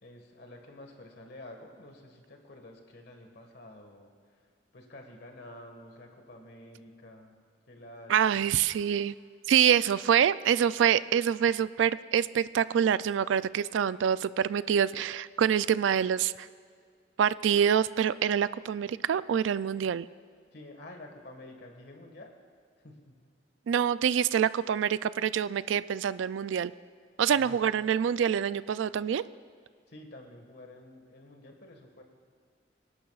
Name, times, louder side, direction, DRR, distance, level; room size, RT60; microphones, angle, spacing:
voice 1, 0.0-4.1 4.7-7.4 7.7-8.5 20.5-22.4 22.8-23.1 27.3-27.6 29.9-32.0, left 1 dB, 55° left, 3 dB, 1.6 m, -49 dB
voice 2, 8.1-9.1 9.5-16.5 17.2-20.1 23.7-26.7 27.2-29.2, right 8 dB, 75° right, 16 dB, 0.3 m, -26 dB
25.0 x 11.5 x 2.4 m, 2.1 s
head